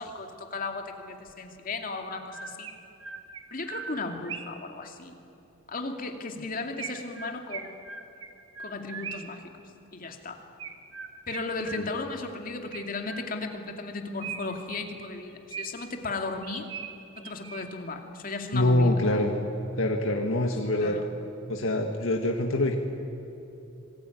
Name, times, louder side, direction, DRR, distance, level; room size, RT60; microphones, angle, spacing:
voice 1, 0.0-2.7 3.5-5.1 5.7-7.8 8.6-9.4 9.9-10.4 11.3-16.7 17.2-19.0 20.8-21.1, left 3 dB, 45° left, 4 dB, 2.4 m, -35 dB
Chirp tweet, 1.3-1.4 2.1-4.7 6.8-9.4 10.6-12.2 12.7-13.6 14.2-16.0 16.4-17.9, right 5 dB, 80° right, 1.9 m, -41 dB
voice 2, 18.5-19.3 19.8-21.0 21.5-22.8, left 1 dB, 85° left, 2 dB, 1.9 m, -25 dB
26.0 x 20.5 x 9.4 m, 3.0 s
head